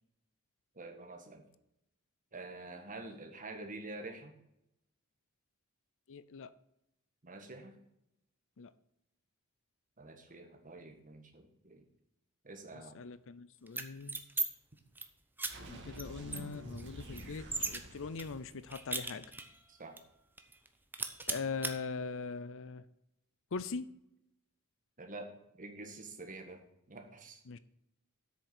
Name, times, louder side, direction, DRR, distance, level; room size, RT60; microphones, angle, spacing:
voice 1, 0.7-1.5 2.3-4.3 7.2-7.8 10.0-11.8 12.4-12.9 19.7-20.0 25.0-26.6 26.9-27.4, right 2 dB, 40° right, 4 dB, 1.6 m, -47 dB
voice 2, 6.1-6.5 8.6-8.7 12.9-14.2 15.7-19.3 21.3-22.8 23.5-23.9 27.5-27.6, left 4 dB, 65° left, 15 dB, 0.6 m, -41 dB
sound 1, 13.7-14.5 14.8-15.1 15.4-15.5 16.0-16.1 16.3-17.8 18.2-19.6 20.0-20.1 20.4-20.7 20.9-21.7, right 3 dB, 10° right, 0.8 m, -37 dB
sound 2, 15.5-19.2, right 1 dB, 55° right, 2.2 m, -49 dB
8.2 x 6.7 x 6.0 m, 0.82 s
head